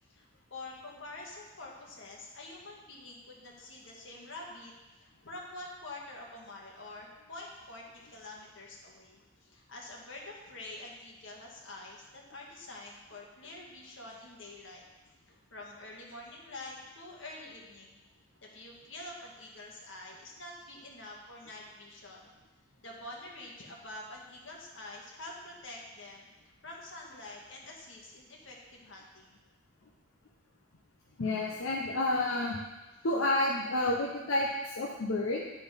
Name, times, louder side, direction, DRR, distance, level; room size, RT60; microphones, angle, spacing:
voice 1, 0.1-14.8 15.3-18.0 18.4-22.3 22.8-26.3 26.6-29.4, left 2 dB, 65° left, -2 dB, 1.8 m, -47 dB
voice 2, 31.2-32.6 33.0-35.4, left 2 dB, 80° left, -2 dB, 0.9 m, -30 dB
11.0 x 4.2 x 5.2 m, 1.1 s
head